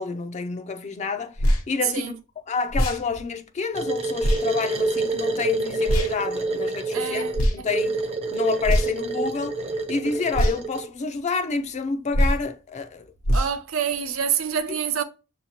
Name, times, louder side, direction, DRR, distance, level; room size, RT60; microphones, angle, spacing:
voice 1, 0.0-2.2 2.5-7.2 7.5-8.0 8.3-13.0, left 4 dB, 35° left, 0.4 m, -29 dB
sound 1, 1.4-1.6 2.7-3.0 4.2-4.4 5.9-6.1 7.3-7.6 8.6-9.1 10.3-10.6 12.1-12.4 13.2-13.5, equal, 85° left, 0.8 m, -21 dB
voice 2, 1.8-2.1 6.9-7.7 13.3-15.0, right 8 dB, 80° right, 0.6 m, -27 dB
sound 2, 3.7-10.9, right 3 dB, 30° right, 0.6 m, -27 dB
6.5 x 2.8 x 2.8 m
head